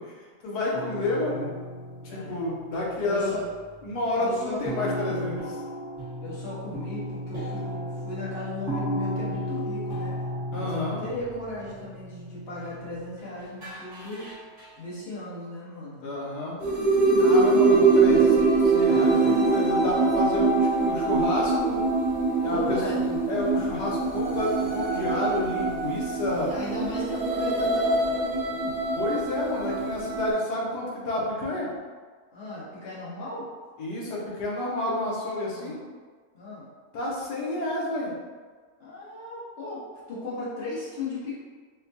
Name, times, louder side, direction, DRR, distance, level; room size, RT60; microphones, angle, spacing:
voice 1, 0.0-1.5 2.0-3.4 3.8-5.4 10.5-11.0 16.0-16.6 17.2-21.8 22.3-22.8 23.3-26.5 29.0-31.7 33.8-35.8 36.9-38.2, left 2 dB, 80° left, -4 dB, 1.4 m, -30 dB
sound 1, 0.7-3.6 3.9-4.1 4.6-13.2 13.6-14.6, equal, 35° right, 1.1 m, -35 dB
voice 2, 2.1-2.4 3.0-3.4 4.2-4.6 4.9-5.1 6.2-10.1 10.5-14.3 14.8-16.1 22.5-23.2 26.3-28.7 32.3-33.4 35.5-35.7 36.3-36.7 38.8-39.8 40.1-41.4, left 2 dB, 45° left, -8 dB, 1.2 m, -36 dB
sound 2, 16.6-30.3, right 3 dB, 50° right, 0.6 m, -23 dB
4.5 x 2.2 x 2.7 m, 1.5 s
omnidirectional pair, 1.7 m